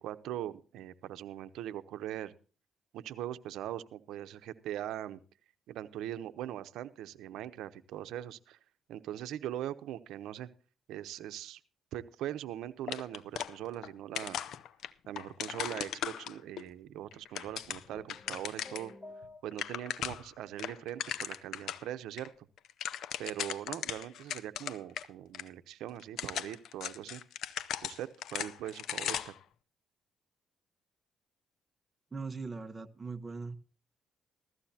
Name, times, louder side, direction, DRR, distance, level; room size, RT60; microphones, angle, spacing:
voice 1, 0.0-2.3 2.9-5.2 5.7-8.6 8.9-10.5 10.9-11.6 11.9-14.4 15.1-18.9 19.4-22.5 23.2-27.2 27.8-29.3, right 12 dB, 85° right, 12 dB, 0.9 m, -41 dB
sound 1, 12.9-13.9 14.1-16.6 17.1-18.9 19.2-19.3 19.5-20.3 20.6-21.8 22.2-22.3 22.6-25.0 25.3-25.4 26.0-29.4, left 10 dB, 75° left, 0.7 m, -38 dB
sound 2, 17.9-19.9, left 2 dB, 15° left, 1.7 m, -51 dB
voice 2, 32.1-33.6, right 4 dB, 25° right, 7 dB, 1.3 m, -40 dB
16.0 x 14.0 x 2.8 m, 0.37 s
cardioid pair, 90°, 0 cm